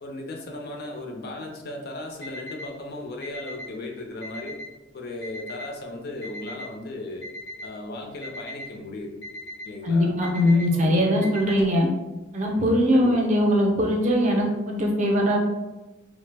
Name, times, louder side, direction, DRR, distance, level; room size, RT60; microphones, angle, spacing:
voice 1, 0.0-4.6 4.9-7.3 7.6-9.2 9.6-10.1 10.4-11.3 12.9-13.2, left 2 dB, 55° left, 1 dB, 0.5 m, -36 dB
Alarm, 2.2-2.7 3.2-3.7 4.2-4.7 5.2-5.7 6.2-6.7 7.2-7.7 8.2-8.7 9.2-9.7 10.2-10.7 11.2-11.8, left 1 dB, 75° left, 0.8 m, -38 dB
voice 2, 9.8-11.9 12.3-15.4, equal, 40° right, 1 dB, 0.5 m, -21 dB
3.1 x 2.0 x 3.2 m, 1.1 s
head